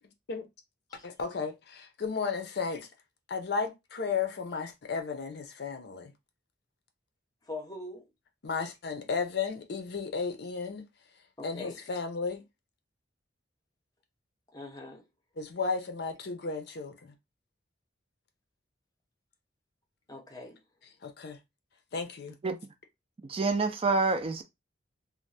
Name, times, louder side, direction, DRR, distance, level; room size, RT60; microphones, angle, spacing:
voice 1, 1.0-2.9 3.3-6.1 8.4-10.9 11.4-12.4 15.4-17.1 21.0-21.4 21.9-22.4, left 5 dB, 60° left, 0.5 m, -34 dB
voice 2, 7.5-8.0 11.4-11.8 14.5-15.0 20.1-20.6, left 2 dB, 20° left, 0.7 m, -42 dB
voice 3, 23.2-24.4, right 3 dB, 30° right, 0.3 m, -27 dB
2.6 x 2.1 x 3.2 m
head